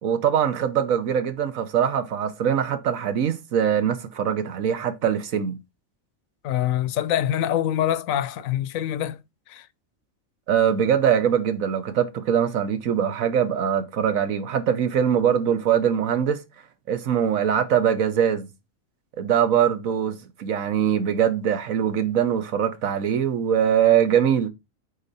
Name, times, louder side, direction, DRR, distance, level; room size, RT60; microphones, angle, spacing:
voice 1, 0.0-5.5 10.5-16.4 16.9-18.5 19.2-24.5, right 8 dB, 75° right, 1.4 m, -22 dB
voice 2, 6.4-9.2 9.5-9.6, left 11 dB, 75° left, 1.0 m, -25 dB
8.3 x 4.2 x 4.1 m
omnidirectional pair, 1.4 m